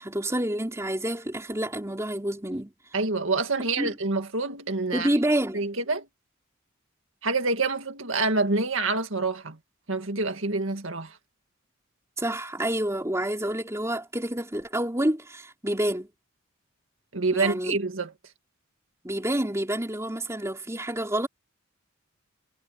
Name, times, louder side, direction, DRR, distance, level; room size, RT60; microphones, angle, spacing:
voice 1, 0.0-2.7 3.8-4.0 4.9-5.7 12.2-16.1 17.3-17.8 19.0-21.3, right 1 dB, 15° right, 3.4 m, -28 dB
voice 2, 2.9-5.1 5.5-6.1 7.2-9.6 9.9-11.2 17.1-18.1, right 3 dB, 65° right, 2.2 m, -27 dB
head